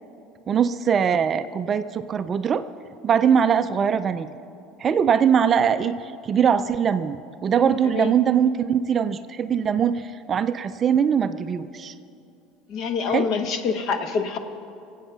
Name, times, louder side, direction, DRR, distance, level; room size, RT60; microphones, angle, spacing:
voice 1, 0.5-2.7 3.0-4.3 4.8-11.9 13.1-13.3, right 7 dB, 25° right, 11 dB, 0.4 m, -22 dB
voice 2, 12.7-14.4, left 5 dB, 45° left, 8 dB, 1.1 m, -26 dB
24.0 x 8.3 x 5.8 m, 2.6 s
cardioid pair, 155°, 0 cm